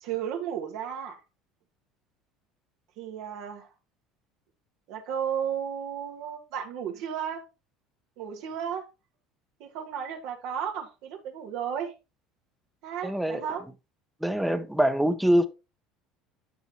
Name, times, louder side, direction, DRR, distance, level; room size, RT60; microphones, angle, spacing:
voice 1, 0.0-1.2 3.0-3.7 4.9-7.4 8.2-8.8 9.6-11.9 12.8-13.6, right 8 dB, 70° right, 1.5 m, -33 dB
voice 2, 13.0-13.5 14.2-15.5, equal, ahead, 0.8 m, -24 dB
9.4 x 6.0 x 2.9 m
supercardioid pair, 115°, 0 cm